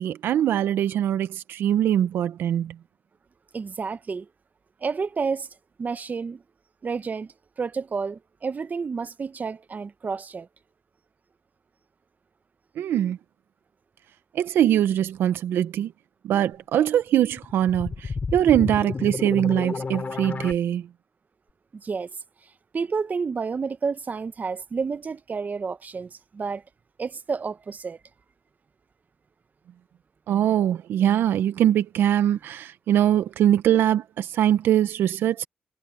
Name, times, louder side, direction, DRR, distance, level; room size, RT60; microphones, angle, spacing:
voice 1, 0.0-2.8 12.8-13.2 14.3-15.9 16.2-20.9 30.3-35.4, right 11 dB, 80° right, 1.0 m, -22 dB
voice 2, 3.5-4.3 4.8-5.5 5.8-6.4 6.8-10.5 21.8-22.2 22.4-26.6 27.0-28.0, right 5 dB, 50° right, 1.3 m, -30 dB
sound 1, 17.3-20.5, left 4 dB, 45° left, 2.8 m, -31 dB
supercardioid pair, 45°, 4 cm